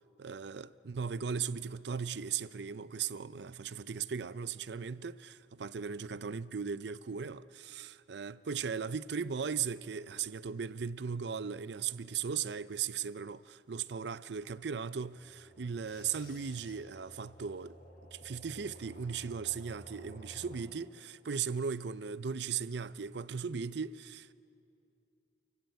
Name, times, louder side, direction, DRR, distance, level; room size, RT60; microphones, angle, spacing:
voice 1, 0.2-17.8 18.1-24.3, right 6 dB, 60° right, 0.5 m, -37 dB
sound 1, 15.0-20.6, equal, 50° left, 4.3 m, -54 dB
28.0 x 16.0 x 9.4 m
head